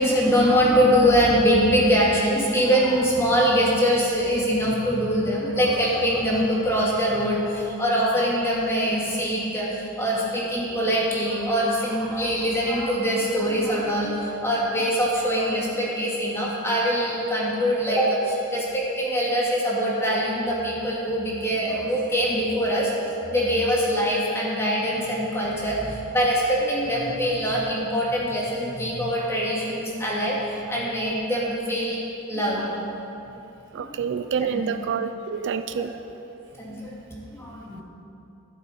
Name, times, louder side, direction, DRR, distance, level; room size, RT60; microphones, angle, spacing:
voice 1, 0.0-32.0 32.3-32.9 33.7-34.6 35.7-35.9 36.6-37.8, equal, 10° left, -5 dB, 2.5 m, -23 dB
voice 2, 33.7-35.9, right 6 dB, 55° right, 9 dB, 0.4 m, -27 dB
12.0 x 11.5 x 4.9 m, 2.9 s
head